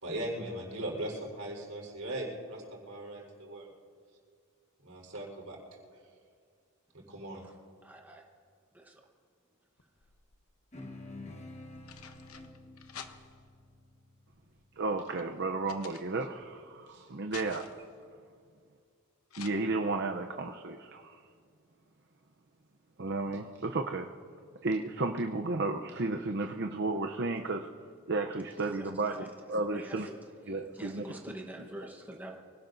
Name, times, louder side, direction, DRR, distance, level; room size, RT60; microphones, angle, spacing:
voice 1, 0.0-3.7 4.8-5.6 6.9-7.4, right 1 dB, 80° right, -3 dB, 4.2 m, -39 dB
voice 2, 7.8-8.3 8.7-9.0 28.3-29.3 29.6-30.2 30.5-32.4, right 1 dB, 10° right, 0 dB, 1.1 m, -46 dB
sound 1, 9.8-10.6 11.5-13.6 14.3-16.5 16.9-18.0 19.3-19.5, left 7 dB, 90° left, 1.0 m, -50 dB
sound 2, 10.7-15.5, left 2 dB, 30° left, 1.4 m, -49 dB
voice 3, 14.8-17.7 19.4-21.2 23.0-24.1 24.6-27.7 28.1-30.1 30.4-31.0, right 3 dB, 55° right, 4 dB, 0.7 m, -33 dB
25.0 x 17.5 x 2.7 m, 2.2 s
head